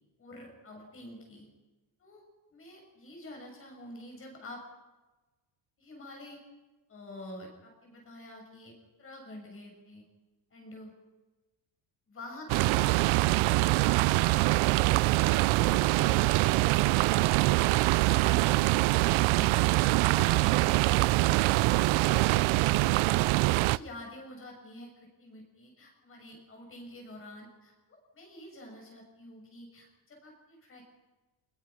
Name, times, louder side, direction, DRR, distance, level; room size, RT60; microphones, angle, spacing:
voice 1, 0.2-1.5 2.0-2.2 2.5-4.6 5.8-6.4 6.9-8.7 9.0-10.0 10.5-10.9 12.1-12.9 14.0-14.3 14.7-17.6 17.9-21.2 21.5-22.8 23.2-30.9, left 1 dB, 25° left, 1 dB, 6.9 m, -48 dB
sound 1, 12.5-23.8, right 20 dB, 75° right, 0.6 m, -24 dB
26.0 x 21.5 x 6.0 m, 1.2 s
cardioid pair, 180°, 48 cm